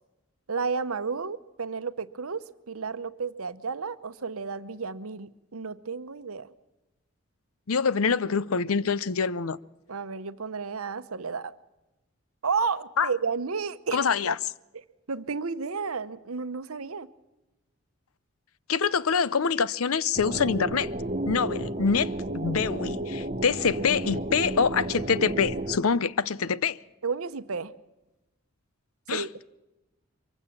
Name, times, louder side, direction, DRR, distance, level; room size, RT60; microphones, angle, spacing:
voice 1, 0.5-6.5 9.9-11.5 12.4-14.1 15.1-17.1 27.0-27.7 29.1-29.5, right 5 dB, 85° right, 0.9 m, -32 dB
voice 2, 7.7-9.6 13.0-13.1 13.9-14.4 18.7-20.9 21.3-26.8 29.1-29.5, left 5 dB, 85° left, 0.6 m, -25 dB
sound 1, 20.2-25.8, right 1 dB, 30° right, 0.8 m, -32 dB
23.5 x 15.5 x 7.3 m
head